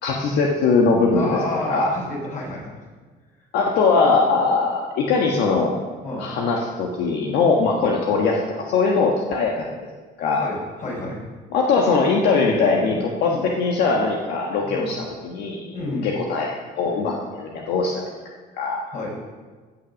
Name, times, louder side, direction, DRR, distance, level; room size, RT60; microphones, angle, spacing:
voice 1, 0.0-1.3 1.7-1.9 3.5-5.7 6.2-9.7 10.2-10.4 11.5-15.7 16.0-18.0 18.6-18.8, left 4 dB, 80° left, -1 dB, 1.5 m, -21 dB
voice 2, 1.1-2.7 6.0-6.3 10.3-11.2 13.2-13.4 14.6-14.9 15.7-16.1 18.9-19.2, left 2 dB, 50° left, -2 dB, 4.7 m, -30 dB
16.0 x 6.1 x 6.3 m, 1.4 s
cardioid pair, 110°, 17 cm